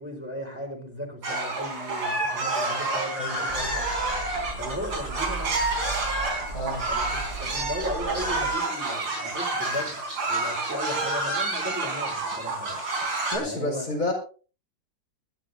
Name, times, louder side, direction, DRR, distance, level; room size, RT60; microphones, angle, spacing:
voice 1, 0.0-3.8 4.6-5.6 6.9-10.0 10.3-12.8 13.4-13.9, equal, 5° right, 1 dB, 4.2 m, -36 dB
sound 1, 1.2-13.4, right 2 dB, 85° right, 4.8 m, -29 dB
voice 2, 3.2-3.7 6.5-6.8 13.3-14.1, left 1 dB, 50° left, 0 dB, 5.0 m, -30 dB
sound 2, 3.5-8.6, right 3 dB, 25° left, 4.0 m, -37 dB
22.5 x 12.0 x 2.7 m, 0.37 s
omnidirectional pair, 2.0 m